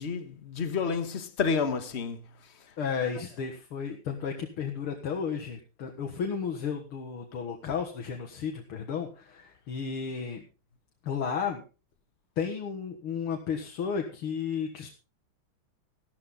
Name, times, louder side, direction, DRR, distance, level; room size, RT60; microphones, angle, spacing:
voice 1, 0.0-2.2, left 5 dB, 35° left, 1.3 m, -30 dB
voice 2, 2.8-10.4 11.0-11.6 12.4-14.9, left 6 dB, 80° left, 2.6 m, -33 dB
14.5 x 12.5 x 3.9 m
omnidirectional pair, 2.3 m